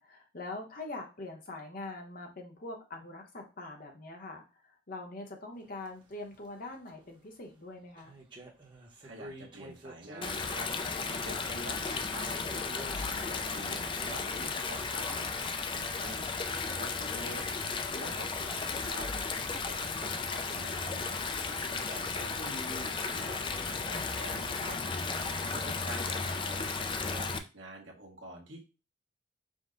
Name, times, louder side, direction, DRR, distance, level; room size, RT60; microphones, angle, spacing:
voice 1, 0.0-8.2 19.8-20.1, left 2 dB, 45° left, 2 dB, 0.9 m, -43 dB
sound 1, 5.6-16.8 17.1-17.3 17.7-17.9 18.2-18.3 18.7-18.8 19.1-19.2 20.3-22.0, right 1 dB, 25° right, 0.8 m, -51 dB
voice 2, 9.0-12.6 13.0-15.3 15.7-16.3 16.6-17.5 17.9-19.1 19.5-21.0 21.5-24.8 25.5-28.6, right 1 dB, 70° right, -1 dB, 1.2 m, -47 dB
Stream, 10.2-27.4, left 4 dB, 25° left, 0.3 m, -34 dB
5.2 x 2.1 x 3.8 m, 0.31 s
head